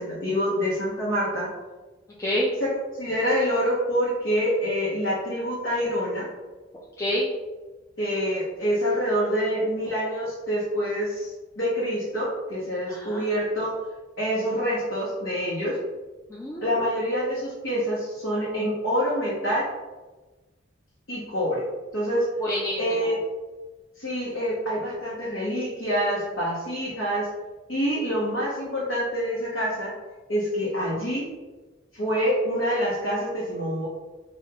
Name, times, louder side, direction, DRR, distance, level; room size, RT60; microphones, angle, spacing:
voice 1, 0.0-1.5 2.6-6.3 8.0-13.7 14.2-15.8 16.6-19.7 21.1-21.6 21.9-22.3 22.8-23.1 24.0-27.3 27.7-29.9 30.3-31.3 31.9-33.9, equal, 75° left, -8 dB, 0.9 m, -26 dB
voice 2, 2.2-2.5 7.0-7.3 12.9-13.2 16.3-16.8 22.4-23.2, equal, 15° left, -6 dB, 0.4 m, -28 dB
3.3 x 2.3 x 2.8 m, 1.2 s
head